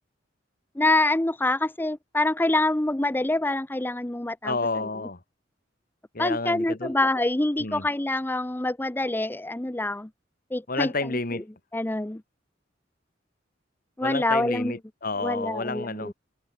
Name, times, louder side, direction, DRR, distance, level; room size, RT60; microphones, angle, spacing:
voice 1, 0.7-4.6 6.2-10.1 10.5-11.2 11.7-12.2 14.0-14.8 15.2-16.1, left 2 dB, 10° left, 0.6 m, -26 dB
voice 2, 4.4-5.2 6.1-6.9 7.6-7.9 10.7-11.4 14.0-16.1, left 3 dB, 50° left, 2.8 m, -30 dB
head